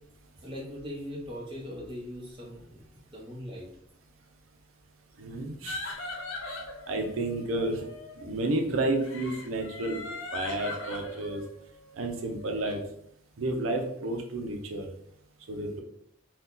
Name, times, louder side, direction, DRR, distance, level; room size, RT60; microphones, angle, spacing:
voice 1, 0.4-2.8 3.1-3.7, equal, 25° right, -3 dB, 0.8 m, -40 dB
voice 2, 5.2-5.9 6.9-7.9 8.2-11.4 12.0-12.8 13.4-14.9 15.5-15.8, right 2 dB, 85° right, 3 dB, 0.6 m, -31 dB
sound 1, 5.7-8.3 9.0-12.8, left 2 dB, 65° left, 0.6 m, -40 dB
2.7 x 2.2 x 3.7 m, 0.71 s
head